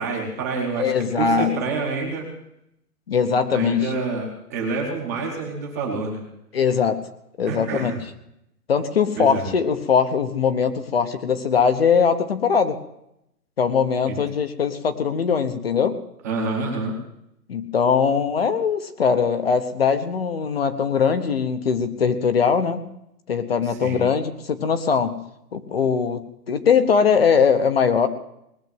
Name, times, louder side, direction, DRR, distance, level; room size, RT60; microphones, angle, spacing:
voice 1, 0.0-2.3 3.5-6.2 7.5-8.0 9.2-9.4 14.1-14.2 16.2-16.9 23.7-24.0, right 3 dB, 10° right, 0 dB, 1.0 m, -27 dB
voice 2, 0.8-1.6 3.1-3.9 6.5-7.0 7.4-7.9 8.7-12.8 13.6-15.9 17.5-22.9 23.3-25.2 25.5-28.1, left 6 dB, 40° left, 9 dB, 1.0 m, -21 dB
19.5 x 6.7 x 9.3 m, 0.79 s
hypercardioid pair, 175°, 48 cm